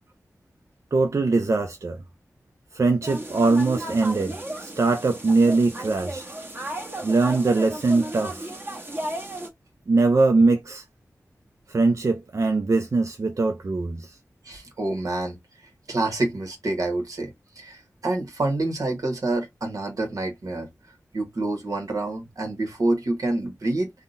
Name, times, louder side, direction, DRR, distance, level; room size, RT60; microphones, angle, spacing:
voice 1, 0.9-2.0 2.7-6.2 7.0-8.5 9.9-10.8 11.7-14.2, right 3 dB, 60° right, 0.5 m, -22 dB
sound 1, 3.0-9.5, right 1 dB, 40° right, 1.2 m, -34 dB
voice 2, 14.4-15.4 15.9-20.7 21.1-23.9, right 2 dB, 80° right, 1.1 m, -27 dB
3.6 x 2.2 x 2.5 m
cardioid pair, 45°, 6 cm